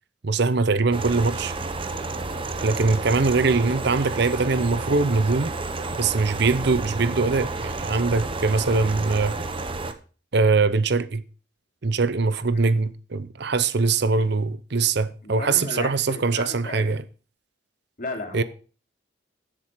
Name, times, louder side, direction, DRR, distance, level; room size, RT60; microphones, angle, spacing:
voice 1, 0.2-1.5 2.6-5.5 6.0-9.4 10.3-11.2 11.8-17.0 18.3-18.4, right 4 dB, 60° right, 0.7 m, -22 dB
sound 1, 0.9-9.9, right 3 dB, 25° right, 0.9 m, -31 dB
voice 2, 15.2-16.9 18.0-18.4, left 2 dB, 45° left, 3.0 m, -34 dB
14.0 x 7.6 x 4.7 m
head